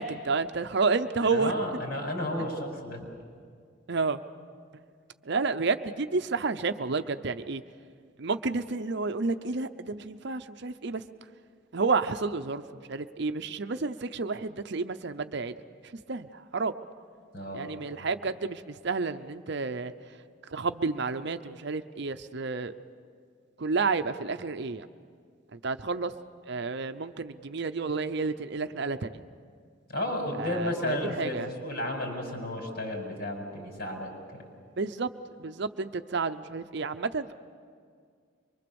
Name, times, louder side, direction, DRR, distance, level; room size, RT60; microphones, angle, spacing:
voice 1, 0.0-1.5 3.9-4.2 5.2-7.6 8.2-11.0 11.7-15.5 16.1-16.7 17.5-19.9 20.5-22.7 23.6-24.9 25.5-26.1 26.5-29.2 30.4-31.5 34.8-35.1 35.4-37.3, right 4 dB, 60° right, 10 dB, 0.7 m, -30 dB
voice 2, 1.3-3.1 17.3-17.7 29.9-34.1, left 1 dB, 55° left, 1 dB, 5.2 m, -32 dB
24.5 x 24.0 x 7.0 m, 2.1 s
head